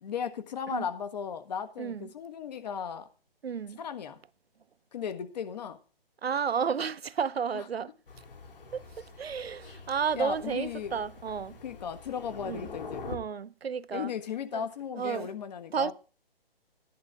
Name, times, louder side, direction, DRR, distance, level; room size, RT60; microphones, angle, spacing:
voice 1, 0.0-3.1 3.8-4.2 4.9-5.8 7.5-7.6 10.1-11.0 11.6-13.1 13.9-15.9, left 7 dB, 45° left, 1.4 m, -36 dB
voice 2, 1.8-2.1 3.4-3.8 6.2-7.9 8.7-11.6 12.4-12.7 13.1-14.1 14.5-14.7 14.9-15.3 15.7-15.9, right 6 dB, 85° right, 0.7 m, -32 dB
Thunder, 8.1-13.2, left 4 dB, 65° left, 3.2 m, -45 dB
12.5 x 10.5 x 3.6 m
hypercardioid pair, 145°, 30 cm